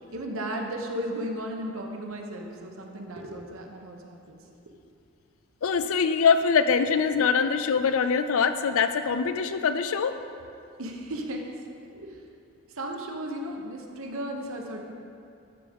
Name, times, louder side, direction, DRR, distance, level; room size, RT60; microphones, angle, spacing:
voice 1, 0.1-4.4 10.8-11.6 11.9-12.2 12.7-14.9, equal, 70° right, 2 dB, 0.9 m, -35 dB
voice 2, 5.6-10.2, left 6 dB, 70° left, 10 dB, 0.4 m, -23 dB
12.5 x 5.2 x 3.6 m, 2.6 s
head